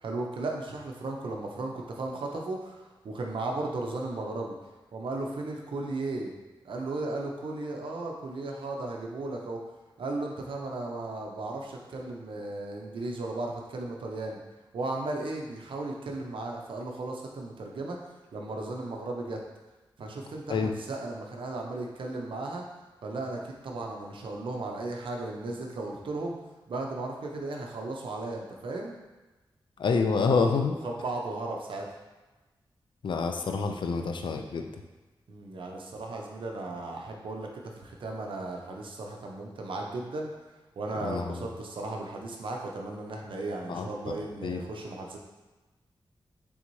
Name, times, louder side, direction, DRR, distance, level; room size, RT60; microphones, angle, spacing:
voice 1, 0.0-4.5 4.9-6.3 6.6-9.6 10.0-14.4 14.7-18.0 18.3-19.4 20.0-22.6 23.0-26.4 26.7-28.9 30.8-31.9 35.3-40.3 40.8-45.2, right 2 dB, 75° right, 0 dB, 0.6 m, -35 dB
voice 2, 29.8-30.8 33.0-34.7 41.0-41.5 43.7-44.1 44.4-44.6, left 4 dB, 65° left, 5 dB, 0.4 m, -27 dB
3.9 x 3.5 x 3.1 m, 1.2 s
wide cardioid pair, 100°, 9 cm